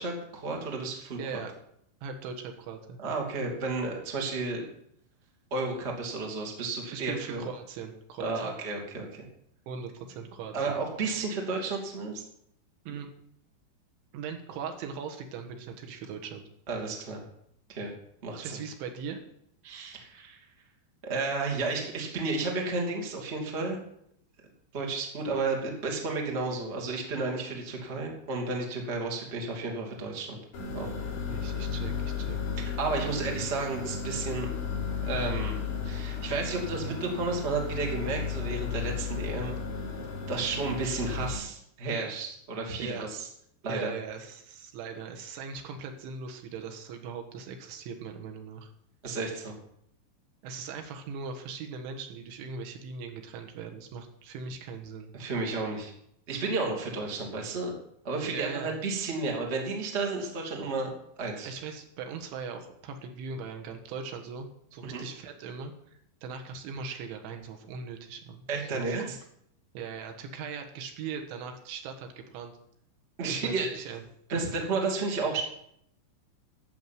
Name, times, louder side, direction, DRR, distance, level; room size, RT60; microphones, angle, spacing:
voice 1, 0.0-1.2 3.0-4.6 5.5-7.5 8.2-9.2 10.5-12.2 16.7-17.2 17.7-17.9 18.2-18.6 19.6-20.5 21.0-23.8 24.7-30.4 30.7-31.0 32.6-34.5 35.0-35.5 35.8-39.5 40.3-43.3 43.6-43.9 49.0-49.5 55.1-55.9 56.3-57.7 58.0-60.9 61.2-61.5 64.8-65.0 68.5-69.2 73.2-73.7 74.3-75.4, right 3 dB, 25° right, 0 dB, 1.6 m, -32 dB
voice 2, 1.2-1.5 2.0-3.1 6.9-8.5 9.7-10.8 12.9-13.1 14.1-16.5 18.3-19.2 31.3-32.4 42.8-43.1 43.7-48.7 50.4-55.1 58.3-58.8 61.4-65.7 66.2-69.2 69.8-72.5 73.3-74.0, right 5 dB, 80° right, 4 dB, 3.7 m, -40 dB
sound 1, 30.5-41.4, left 6 dB, 45° left, 5.0 m, -34 dB
11.5 x 7.4 x 9.2 m, 0.73 s
omnidirectional pair, 5.4 m